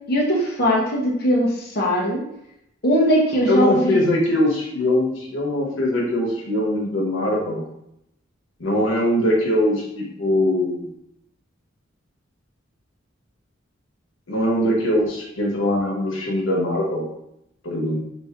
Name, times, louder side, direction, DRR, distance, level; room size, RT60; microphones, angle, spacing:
voice 1, 0.1-2.2 2.8-4.0, equal, 50° left, -4 dB, 1.1 m, -20 dB
voice 2, 3.4-7.6 8.6-10.9 14.3-17.1 17.6-18.0, left 1 dB, 85° left, -3 dB, 1.3 m, -21 dB
5.2 x 2.7 x 3.6 m, 0.79 s
head